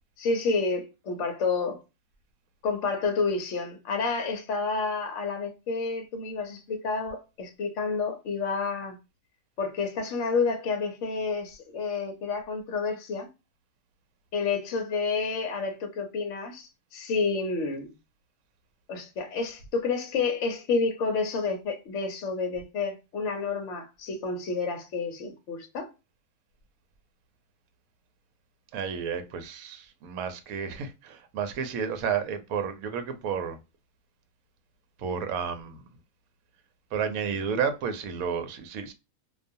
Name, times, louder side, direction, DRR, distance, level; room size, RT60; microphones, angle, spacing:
voice 1, 0.2-1.8 2.6-9.0 9.6-13.3 14.3-17.9 18.9-25.9, left 4 dB, 65° left, 0.9 m, -29 dB
voice 2, 28.7-33.6 35.0-35.8 36.9-38.9, right 6 dB, 80° right, 1.0 m, -31 dB
2.4 x 2.3 x 2.6 m
omnidirectional pair, 1.5 m